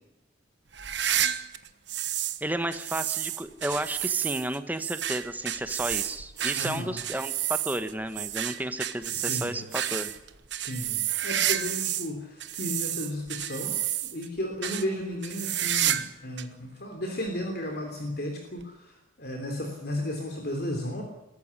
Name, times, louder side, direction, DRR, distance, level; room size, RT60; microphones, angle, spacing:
sound 1, 0.7-2.4 2.7-12.1 12.4-14.3 14.6-14.9 15.2-16.1 16.4-16.5 17.3-17.4 18.6-18.7, right 11 dB, 60° right, 1.3 m, -30 dB
voice 1, 2.4-10.1, right 1 dB, 10° right, 10 dB, 1.2 m, -32 dB
voice 2, 6.5-7.0 9.2-9.7 10.6-13.8 14.1-21.0, left 1 dB, 50° left, 3 dB, 3.3 m, -34 dB
22.0 x 14.5 x 9.8 m, 0.96 s
head